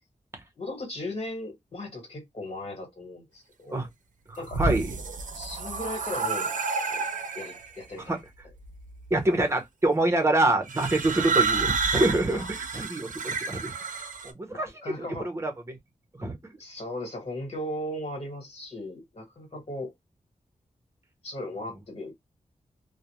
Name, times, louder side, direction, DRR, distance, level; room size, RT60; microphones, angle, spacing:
voice 1, 0.6-3.8 4.4-4.6 5.3-6.5 6.9-7.0 7.3-8.2 12.3-12.5 14.5-15.3 16.6-19.9 21.2-22.1, left 1 dB, 50° left, 1.4 m, -37 dB
voice 2, 4.3-4.9 8.1-8.2 9.1-13.7 14.2-14.7 15.2-15.8 16.2-16.4, right 2 dB, 20° right, 0.8 m, -26 dB
sound 1, 4.3-7.7 8.6-9.1 10.7-14.3, right 5 dB, 80° right, 0.6 m, -30 dB
2.4 x 2.1 x 2.9 m
wide cardioid pair, 125°, 13 cm